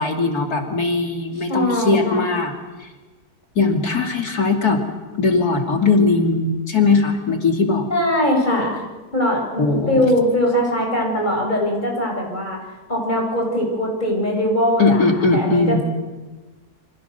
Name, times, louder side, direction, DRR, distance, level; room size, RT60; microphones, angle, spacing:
voice 1, 0.0-2.5 2.8-2.9 3.6-4.8 5.2-7.9 9.6-10.1 14.8-15.8, left 3 dB, 75° left, 3 dB, 3.1 m, -19 dB
voice 2, 1.4-2.2 7.9-8.8 9.1-12.6 12.9-15.1 15.3-15.8, left 1 dB, 30° left, 0 dB, 7.4 m, -21 dB
28.5 x 25.5 x 6.8 m, 1.3 s
omnidirectional pair, 1.7 m